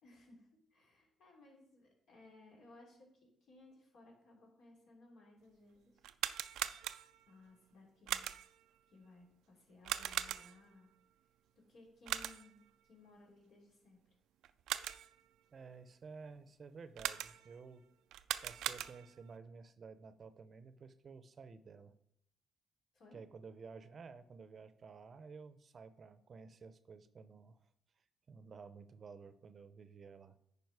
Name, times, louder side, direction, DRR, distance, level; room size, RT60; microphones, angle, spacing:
voice 1, 0.0-6.0 7.3-8.3 8.9-10.9 11.5-14.0 22.9-23.2, left 2 dB, 75° left, -1 dB, 3.0 m, -61 dB
sound 1, 6.0-7.3 8.1-8.6 9.8-10.7 12.1-12.6 14.4-15.2 17.0-17.6 18.1-19.2, right 12 dB, 85° right, 0.3 m, -40 dB
voice 2, 15.5-17.9 18.4-22.0 23.1-27.6 28.3-30.4, right 5 dB, 45° right, 12 dB, 0.6 m, -53 dB
9.4 x 4.9 x 4.7 m, 0.73 s
cardioid pair, 90°, 0 cm